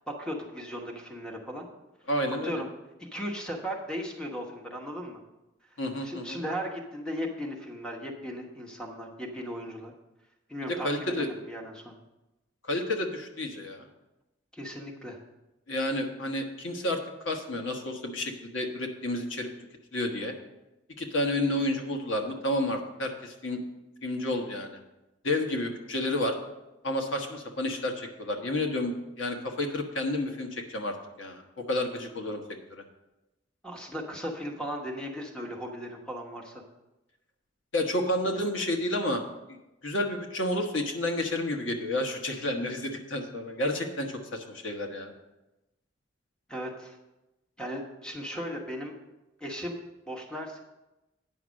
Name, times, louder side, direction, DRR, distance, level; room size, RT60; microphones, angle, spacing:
voice 1, 0.1-1.7 2.3-2.7 3.0-5.2 6.0-9.9 10.5-11.9 14.5-15.2 33.6-36.6 46.5-47.0 47.6-48.9 49.4-49.8 50.1-50.6, equal, 5° left, 1 dB, 1.2 m, -37 dB
voice 2, 2.1-2.6 5.8-6.4 10.8-11.3 12.6-13.9 15.7-17.0 17.2-19.5 19.9-20.3 21.0-23.6 24.0-24.8 25.2-26.3 26.8-32.4 32.7-32.8 37.7-39.2 39.8-45.1, left 1 dB, 75° left, 3 dB, 1.2 m, -30 dB
9.3 x 5.8 x 6.3 m, 0.99 s
head